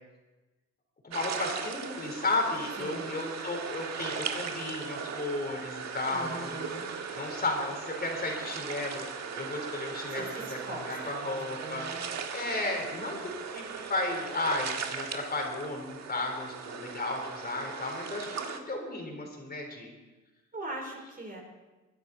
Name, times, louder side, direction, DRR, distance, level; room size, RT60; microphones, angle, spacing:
voice 1, 1.0-6.6 7.1-11.9 12.3-13.2 13.5-19.9, left 2 dB, 30° left, 1 dB, 3.9 m, -34 dB
sound 1, 1.1-18.6, right 6 dB, 60° right, 1.6 m, -38 dB
voice 2, 2.8-3.2 6.1-6.9 10.1-12.0 20.5-21.4, right 2 dB, 30° right, 1 dB, 4.0 m, -41 dB
21.5 x 10.5 x 4.2 m, 1.1 s
cardioid pair, 90°, 30 cm